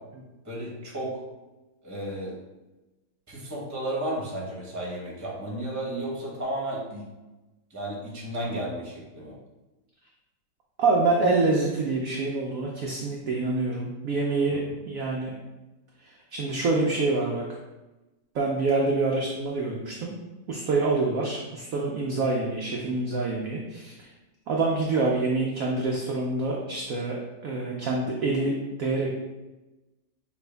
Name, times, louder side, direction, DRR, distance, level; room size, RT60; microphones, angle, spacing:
voice 1, 0.4-1.2 1.8-2.4 3.3-7.0 7.7-9.4 14.5-14.6, right 1 dB, 15° right, -3 dB, 0.8 m, -33 dB
voice 2, 10.8-15.3 16.0-17.4 18.3-20.1 20.5-24.1 24.5-27.2 27.4-29.1, right 3 dB, 70° right, -2 dB, 0.8 m, -26 dB
6.0 x 2.5 x 3.4 m, 1.1 s
omnidirectional pair, 2.1 m